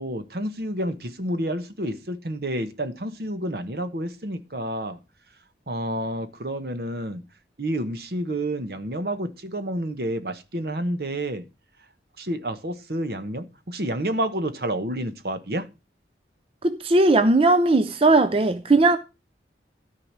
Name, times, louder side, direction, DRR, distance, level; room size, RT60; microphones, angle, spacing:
voice 1, 0.0-5.0 5.7-7.2 7.6-11.4 12.2-15.7, right 1 dB, 60° right, 1.2 m, -29 dB
voice 2, 16.6-19.0, right 2 dB, 30° right, 0.5 m, -18 dB
13.5 x 4.9 x 6.0 m
head